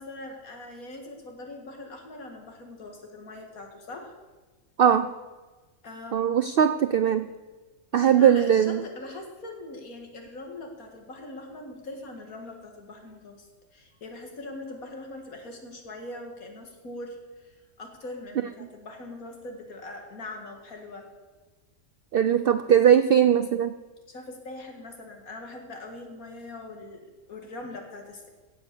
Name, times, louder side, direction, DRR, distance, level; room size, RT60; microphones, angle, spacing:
voice 1, 0.0-4.1 5.8-6.5 7.9-17.5 17.8-21.1 24.1-28.3, left 2 dB, 80° left, 3 dB, 2.5 m, -41 dB
voice 2, 4.8-5.1 6.1-7.3 7.9-8.8 22.1-23.7, right 9 dB, 70° right, 12 dB, 0.5 m, -20 dB
16.0 x 8.3 x 6.9 m, 1.3 s
omnidirectional pair, 1.5 m